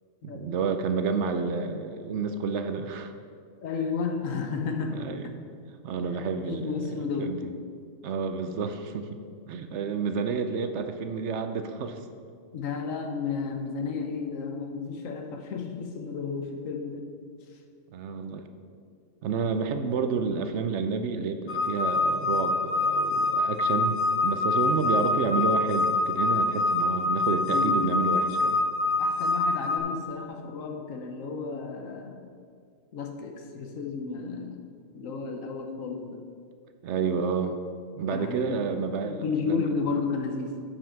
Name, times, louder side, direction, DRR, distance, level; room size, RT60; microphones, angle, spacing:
voice 1, 0.2-3.1 4.9-5.3 5.8-7.4 8.0-9.2 9.5-12.0 17.9-18.4 19.2-28.6 36.8-37.6 38.0-39.6, right 5 dB, 65° right, 8 dB, 0.8 m, -30 dB
voice 2, 3.6-5.3 6.4-7.4 12.5-17.1 24.8-24.9 27.3-28.3 29.0-32.3 32.9-34.6 34.9-36.2 38.1-40.6, left 5 dB, 80° left, 4 dB, 1.3 m, -33 dB
sound 1, 21.5-29.8, left 2 dB, 55° left, 1.1 m, -25 dB
8.5 x 5.5 x 5.8 m, 2.2 s
omnidirectional pair, 1.4 m